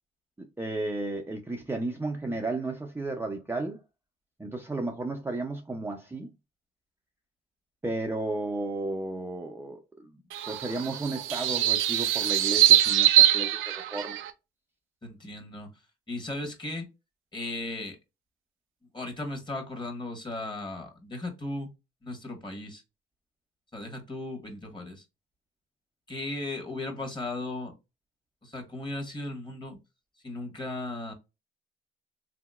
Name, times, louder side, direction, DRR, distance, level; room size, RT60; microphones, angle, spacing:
voice 1, 0.4-3.8 4.4-6.3 7.8-10.2 10.5-14.2, right 2 dB, 10° right, 0.5 m, -33 dB
sound 1, 10.3-14.3, right 13 dB, 90° right, 0.5 m, -23 dB
voice 2, 15.0-15.7 16.1-16.9 17.3-18.0 18.9-21.7 22.0-22.8 23.7-25.0 26.1-27.7 28.4-29.8 30.2-31.1, left 2 dB, 25° left, 1.4 m, -36 dB
3.4 x 2.8 x 2.3 m
cardioid pair, 90°, 20 cm